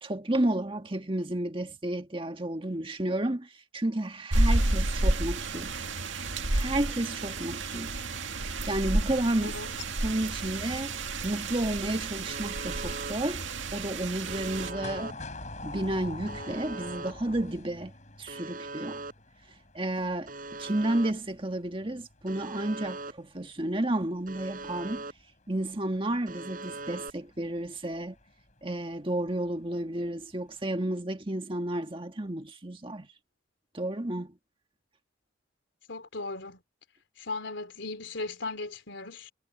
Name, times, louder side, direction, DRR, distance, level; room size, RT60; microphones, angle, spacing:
voice 1, 0.0-5.8 6.5-8.0 8.4-9.6 10.0-11.0 11.2-15.2 15.6-17.9 18.2-19.0 19.7-25.0 25.5-28.2 28.6-33.1 33.7-34.3, right 1 dB, 30° right, 1.7 m, -31 dB
sound 1, 4.3-14.7, right 2 dB, 80° right, 2.0 m, -30 dB
Alarm, 12.3-13.1 14.3-15.1 16.3-17.1 18.3-19.1 20.3-21.1 22.3-23.1 24.3-25.1 26.3-27.1, right 3 dB, 45° right, 6.5 m, -40 dB
sound 2, 14.6-28.6 28.9-29.0 30.0-30.4 30.7-30.8, left 2 dB, 40° left, 7.1 m, -46 dB
voice 2, 35.9-36.6 37.2-39.3, left 3 dB, 75° left, 3.5 m, -37 dB
head